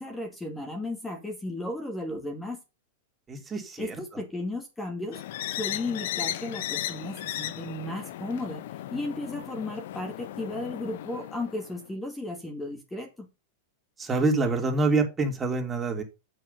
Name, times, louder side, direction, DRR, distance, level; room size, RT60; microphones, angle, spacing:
voice 1, 0.0-2.6 3.8-5.2 5.5-8.6 8.9-13.3, left 2 dB, 10° left, 2.1 m, -34 dB
voice 2, 3.3-3.9 14.0-16.0, right 3 dB, 20° right, 3.2 m, -26 dB
sound 1, 5.1-11.9, left 13 dB, 65° left, 0.8 m, -36 dB
8.0 x 6.4 x 5.4 m
hypercardioid pair, 105°, 0 cm